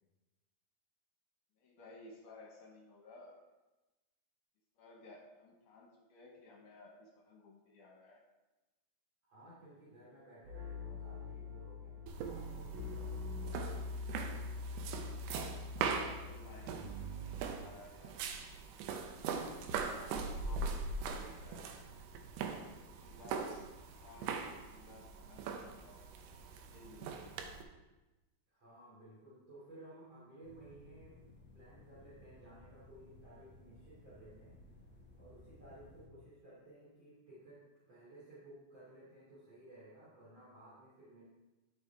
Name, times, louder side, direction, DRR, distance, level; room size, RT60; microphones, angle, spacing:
voice 1, 1.6-3.4 4.8-8.2 15.8-18.2 18.5-18.7 19.6-21.7 22.7-24.4 24.7-26.1 26.4-27.4, left 2 dB, 65° left, -1 dB, 2.2 m, -56 dB
voice 2, 9.2-13.8 28.5-31.2 31.5-34.6 35.1-41.2, right 1 dB, 35° right, -10 dB, 2.8 m, -57 dB
sound 1, 10.4-17.4, left 2 dB, 55° right, 2.4 m, -44 dB
sound 2, 12.1-27.6, right 5 dB, 80° right, 2.7 m, -42 dB
sound 3, 30.4-36.1, left 1 dB, 10° left, 0.5 m, -59 dB
12.0 x 6.4 x 3.4 m, 1.1 s
omnidirectional pair, 4.7 m